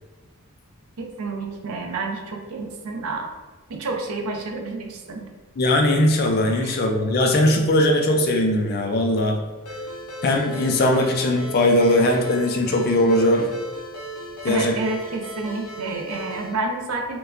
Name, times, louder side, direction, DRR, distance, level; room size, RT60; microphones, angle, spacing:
voice 1, 1.0-3.3 3.7-5.2 6.6-6.8 14.5-17.2, right 3 dB, 70° right, 2 dB, 0.6 m, -29 dB
voice 2, 5.6-9.4 10.2-13.5 14.4-14.7, left 1 dB, 45° left, 3 dB, 0.4 m, -19 dB
Ringtone, 9.7-16.5, equal, 75° left, 0.9 m, -36 dB
4.5 x 2.1 x 2.5 m, 1.3 s
head